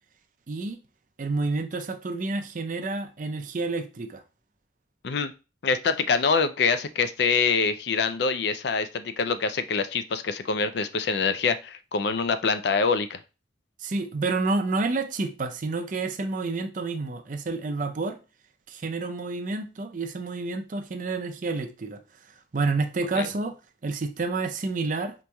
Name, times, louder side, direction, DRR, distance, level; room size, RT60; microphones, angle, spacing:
voice 1, 0.5-0.8 1.2-4.2 13.8-18.2 18.7-22.0 22.5-23.6 23.8-25.1, right 3 dB, 45° right, 0.5 m, -29 dB
voice 2, 5.6-13.2 23.2-23.3, left 5 dB, 65° left, 0.4 m, -25 dB
5.2 x 3.0 x 2.2 m
head